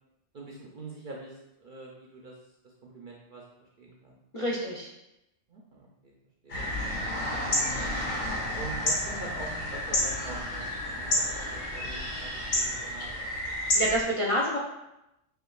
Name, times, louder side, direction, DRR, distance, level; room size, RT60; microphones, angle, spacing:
voice 1, 0.3-2.4 2.6-4.2 5.5-6.1 6.4-6.7 7.4-8.0 8.5-13.6, right 3 dB, 60° right, -2 dB, 0.5 m, -44 dB
voice 2, 4.3-4.9 13.7-14.6, equal, 55° left, -4 dB, 0.3 m, -27 dB
sound 1, 6.5-14.0, left 1 dB, 80° left, 1.6 m, -30 dB
6.6 x 2.5 x 2.3 m, 0.88 s
omnidirectional pair, 1.3 m